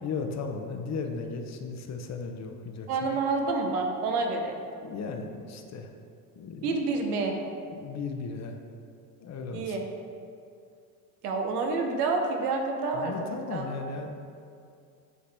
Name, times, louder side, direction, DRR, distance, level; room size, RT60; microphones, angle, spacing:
voice 1, 0.0-3.1 4.8-5.9 6.4-6.7 7.7-8.6 9.2-9.8 12.9-14.1, left 4 dB, 35° left, 5 dB, 0.7 m, -36 dB
voice 2, 2.9-4.6 6.6-7.3 9.5-9.8 11.2-13.7, right 3 dB, 80° right, 2 dB, 0.9 m, -28 dB
8.6 x 4.0 x 3.4 m, 2.4 s
hypercardioid pair, 65°, 46 cm